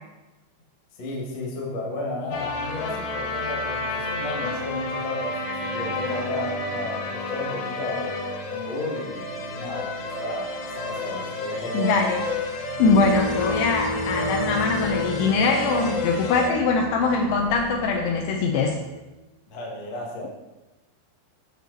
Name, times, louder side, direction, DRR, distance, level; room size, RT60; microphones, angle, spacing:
voice 1, 0.9-8.2 8.5-12.2 19.5-20.3, left 2 dB, 55° left, -2 dB, 1.8 m, -33 dB
sound 1, 2.3-16.5, left 2 dB, 75° left, 2.3 m, -30 dB
voice 2, 11.7-12.2 12.8-18.8, left 4 dB, 90° left, 2 dB, 2.3 m, -22 dB
sound 2, 12.8-19.1, equal, 80° right, 1.6 m, -33 dB
8.8 x 6.4 x 4.0 m, 1.1 s
omnidirectional pair, 5.4 m